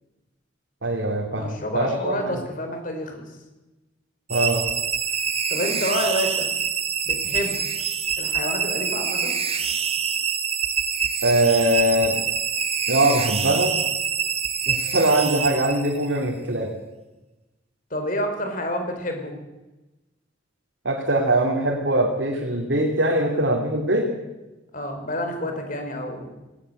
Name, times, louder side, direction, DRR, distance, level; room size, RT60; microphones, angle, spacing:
voice 1, 0.8-2.4 4.3-4.6 11.2-12.2 12.9-13.8 14.7-16.7 20.8-24.1, right 1 dB, 70° right, 0 dB, 2.9 m, -22 dB
voice 2, 1.3-3.3 5.5-6.5 7.0-7.6 8.2-9.3 17.9-19.3 24.7-26.3, equal, 45° left, 5 dB, 4.5 m, -28 dB
sound 1, 4.3-16.2, right 7 dB, 30° right, 1.5 m, -26 dB
18.0 x 18.0 x 8.0 m, 1.1 s
head